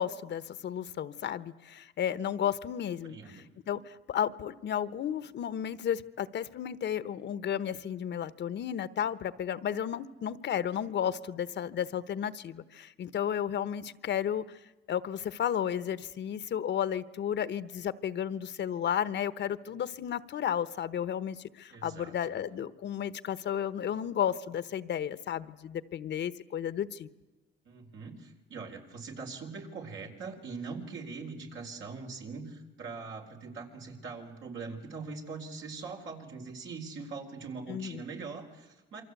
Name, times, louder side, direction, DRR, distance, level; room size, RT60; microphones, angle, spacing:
voice 1, 0.0-3.2 3.7-14.6 14.9-27.1 37.7-38.0, left 9 dB, 65° left, 15 dB, 1.1 m, -33 dB
voice 2, 3.0-3.5 21.7-22.4 27.6-39.0, right 4 dB, 75° right, 2 dB, 4.4 m, -42 dB
27.5 x 24.0 x 8.3 m, 1.1 s
cardioid pair, 90°, 20 cm